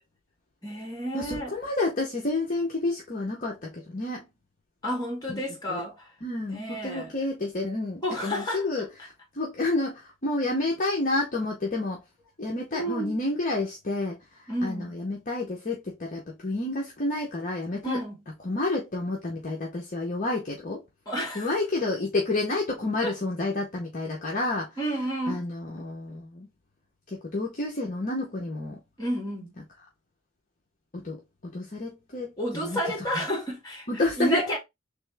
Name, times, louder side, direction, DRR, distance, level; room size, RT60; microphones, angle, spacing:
voice 1, 0.6-1.5 4.8-6.1 6.5-7.1 8.0-8.7 12.7-13.2 14.5-14.9 17.8-18.2 21.1-21.5 23.0-23.1 24.8-25.4 29.0-29.5 32.4-33.9 34.2-34.6, equal, 20° left, 2.1 m, -31 dB
voice 2, 1.1-4.3 5.3-5.4 5.7-5.8 6.2-12.0 12.4-18.0 18.4-20.8 21.3-24.8 25.3-26.5 27.1-28.8 30.9-31.2 31.5-32.3 32.6-33.2 33.9-34.4, left 2 dB, 40° left, 0.9 m, -30 dB
3.4 x 3.3 x 3.4 m
head